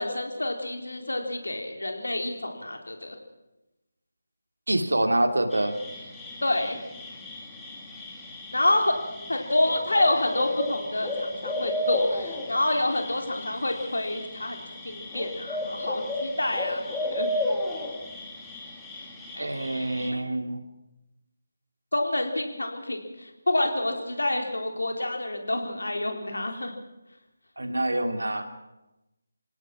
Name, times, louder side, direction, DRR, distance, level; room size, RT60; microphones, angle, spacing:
voice 1, 0.0-3.2 6.4-6.8 8.5-9.0 9.3-14.6 14.8-17.3 21.9-26.7, left 1 dB, 70° left, 3 dB, 4.0 m, -28 dB
voice 2, 4.7-5.8 19.4-20.6 27.6-28.5, right 1 dB, 75° right, 7 dB, 2.5 m, -26 dB
sound 1, 5.5-20.1, left 1 dB, 5° left, 2.5 m, -34 dB
28.0 x 17.5 x 6.1 m, 0.98 s
figure-of-eight pair, 155°, 0 cm